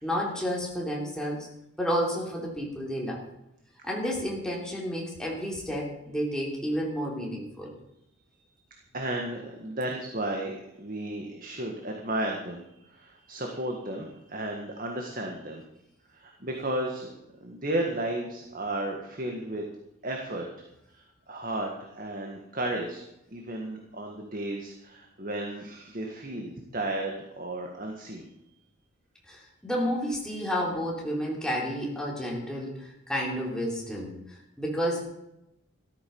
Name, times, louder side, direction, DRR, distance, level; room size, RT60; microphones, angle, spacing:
voice 1, 0.0-1.5 1.8-3.2 3.8-7.7 29.3-35.0, equal, 5° left, -3 dB, 3.4 m, -31 dB
voice 2, 8.9-15.6 16.1-17.1 17.4-19.6 20.0-20.5 20.9-23.0 23.3-28.3, right 1 dB, 40° right, 1 dB, 1.8 m, -33 dB
14.0 x 13.5 x 5.5 m, 0.87 s
head